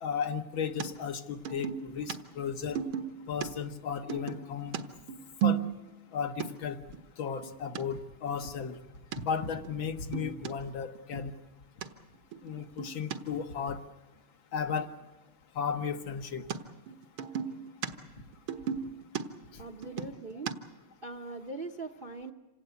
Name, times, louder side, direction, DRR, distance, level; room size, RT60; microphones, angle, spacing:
voice 1, 0.0-2.8 3.3-4.8 5.4-5.6 6.1-6.8 7.2-8.8 9.2-11.3 12.4-13.8 14.5-14.9 15.6-16.4 19.5-19.6, left 6 dB, 70° left, 7 dB, 2.0 m, -34 dB
sound 1, 0.8-0.9 1.4-2.2 2.7-3.5 4.1-6.1 6.4-6.5 6.9-7.0 7.3-7.8 8.3-8.6 9.1-9.2 9.6-9.7 10.0-10.5 10.9-11.3 11.8-11.9 12.3-13.2 16.5-16.6 16.9-17.9 18.2-20.5, right 9 dB, 75° right, 2.1 m, -34 dB
voice 2, 19.6-20.5 21.0-22.3, right 3 dB, 35° right, 7 dB, 0.9 m, -41 dB
27.5 x 17.5 x 8.2 m, 1.1 s
omnidirectional pair, 2.3 m